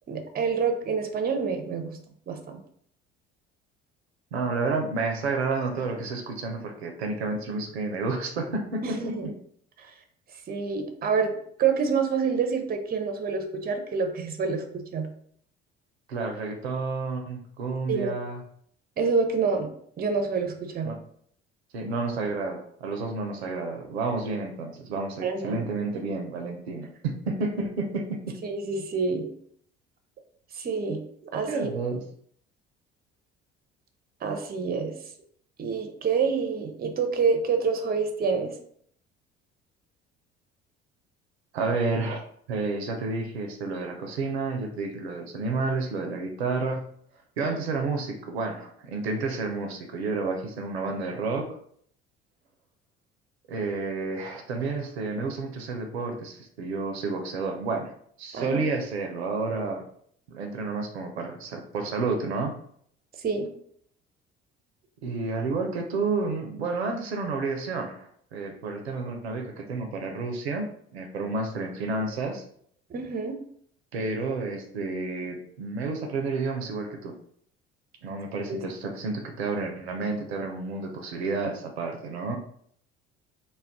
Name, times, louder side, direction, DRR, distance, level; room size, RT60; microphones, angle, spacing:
voice 1, 0.1-2.0 2.3-2.6 8.8-9.3 9.8-9.9 10.5-15.1 17.9-18.2 19.0-19.7 20.0-20.9 25.2-25.7 28.4-29.3 30.5-31.7 34.2-34.9 35.6-38.5 58.3-58.6 63.2-63.5 72.9-73.4 78.5-78.6, right 5 dB, 30° right, 5 dB, 0.6 m, -27 dB
voice 2, 4.3-9.0 16.1-18.4 20.8-21.0 21.7-28.3 31.5-32.0 41.5-42.2 42.5-46.9 47.4-51.6 53.5-57.9 58.2-59.9 60.3-62.5 65.0-72.4 73.9-77.1 78.0-82.4, right 3 dB, 85° right, 3 dB, 0.5 m, -30 dB
2.3 x 2.1 x 3.5 m, 0.63 s
hypercardioid pair, 55°, 31 cm